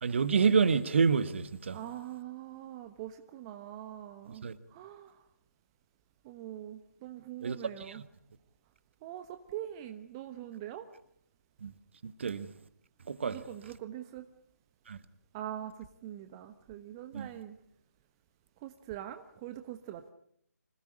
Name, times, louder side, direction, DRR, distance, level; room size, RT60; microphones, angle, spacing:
voice 1, 0.0-1.8 4.4-4.6 7.4-7.6 7.9-8.0 11.6-11.7 12.0-12.5 13.1-13.4 14.9-15.0 17.1-17.3, right 5 dB, 45° right, 1.6 m, -28 dB
voice 2, 1.7-5.2 6.2-8.0 9.0-10.9 13.2-14.2 15.3-17.6 18.6-20.1, right 12 dB, 20° right, 1.0 m, -43 dB
26.0 x 17.5 x 9.9 m
figure-of-eight pair, 150°, 9 cm